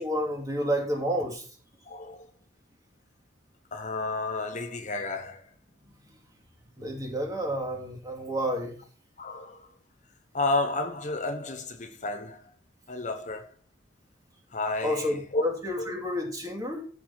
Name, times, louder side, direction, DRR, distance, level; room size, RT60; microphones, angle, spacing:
voice 1, 0.0-1.5 6.8-8.8 14.8-16.8, equal, 20° right, 2.4 m, -30 dB
voice 2, 1.9-2.3 3.7-5.4 9.2-9.7 10.3-12.4 12.9-13.5 14.5-15.4 15.8-15.9, left 2 dB, 40° left, 0.9 m, -31 dB
13.5 x 6.2 x 4.3 m
head